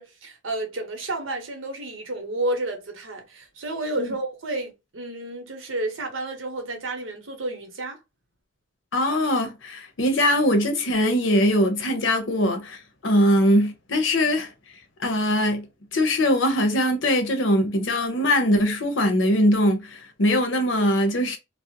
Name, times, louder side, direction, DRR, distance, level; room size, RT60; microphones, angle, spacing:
voice 1, 0.0-8.0, right 2 dB, 85° right, 0.9 m, -31 dB
voice 2, 8.9-14.5 15.0-15.6 15.9-21.4, equal, 75° left, 0.7 m, -21 dB
2.4 x 2.1 x 2.7 m
head